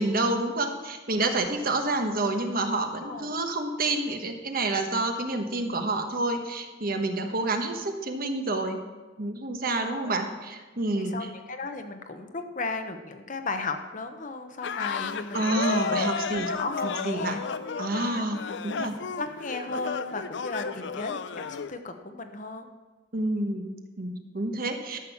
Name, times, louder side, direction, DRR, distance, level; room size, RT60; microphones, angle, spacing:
voice 1, 0.0-8.8 9.2-11.1 15.3-16.5 16.8-17.4 17.8-19.0 23.1-25.0, right 2 dB, 50° right, 5 dB, 1.2 m, -28 dB
voice 2, 3.0-3.4 9.6-10.2 10.9-17.4 17.9-18.0 19.2-22.7, left 3 dB, 45° left, 7 dB, 0.9 m, -35 dB
sound 1, 14.6-21.7, left 5 dB, 65° left, 0.5 m, -33 dB
13.0 x 6.2 x 7.1 m, 1.3 s
head